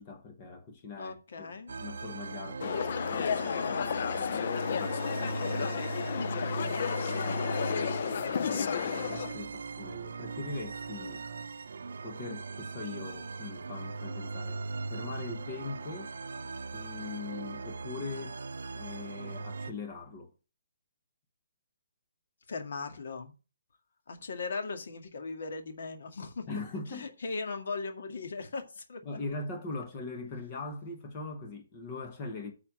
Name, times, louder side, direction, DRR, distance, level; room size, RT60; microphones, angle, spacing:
voice 1, 0.0-1.5 1.8-6.3 7.1-7.4 8.4-11.2 12.0-16.1 16.7-18.4 18.7-20.3 26.5-27.1 29.0-32.5, left 3 dB, 20° left, 1.2 m, -41 dB
voice 2, 1.0-1.8 6.1-6.5 8.4-8.6 22.5-23.3 24.1-26.5 26.9-29.3, left 4 dB, 55° left, 2.0 m, -38 dB
sound 1, 1.7-19.7, right 3 dB, 65° right, 0.6 m, -39 dB
sound 2, 2.6-9.3, left 7 dB, 40° left, 0.4 m, -32 dB
9.3 x 4.3 x 7.6 m
hypercardioid pair, 175°, 0 cm